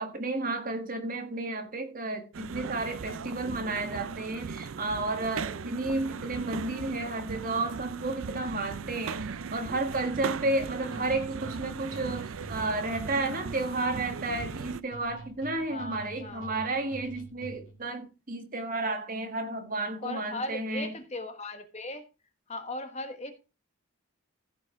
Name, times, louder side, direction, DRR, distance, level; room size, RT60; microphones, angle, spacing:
voice 1, 0.0-20.9, right 2 dB, 40° right, 1.6 m, -32 dB
sound 1, 2.3-14.8, right 5 dB, 70° right, 0.5 m, -38 dB
sound 2, 9.9-17.8, right 2 dB, 70° left, 2.0 m, -47 dB
voice 2, 15.6-16.9 20.0-22.0 22.5-23.3, left 2 dB, 30° left, 1.2 m, -38 dB
15.0 x 5.3 x 4.6 m
head